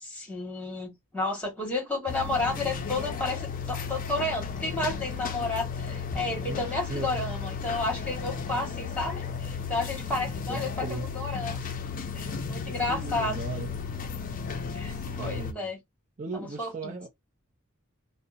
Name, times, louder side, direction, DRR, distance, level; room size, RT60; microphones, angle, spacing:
voice 1, 0.0-11.7 12.1-13.4 14.7-15.8 16.3-16.9, left 2 dB, 5° left, 1.3 m, -32 dB
sound 1, 2.1-15.5, left 5 dB, 40° left, 0.4 m, -34 dB
voice 2, 6.4-7.2 10.5-11.1 12.9-13.7 14.9-15.7 16.2-17.1, right 3 dB, 35° right, 0.5 m, -37 dB
2.7 x 2.0 x 2.3 m
head